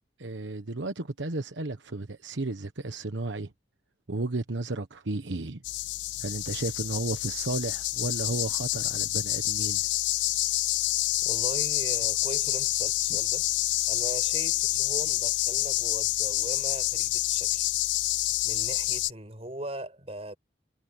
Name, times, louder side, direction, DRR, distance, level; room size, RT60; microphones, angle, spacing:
voice 1, 0.2-3.5 4.1-5.6 6.2-9.8, right 2 dB, 85° right, 1.2 m, -33 dB
sound 1, 5.6-19.1, left 17 dB, 75° left, 0.4 m, -28 dB
voice 2, 11.2-13.5 13.9-17.7 18.4-20.4, right 1 dB, 35° right, 5.7 m, -39 dB
head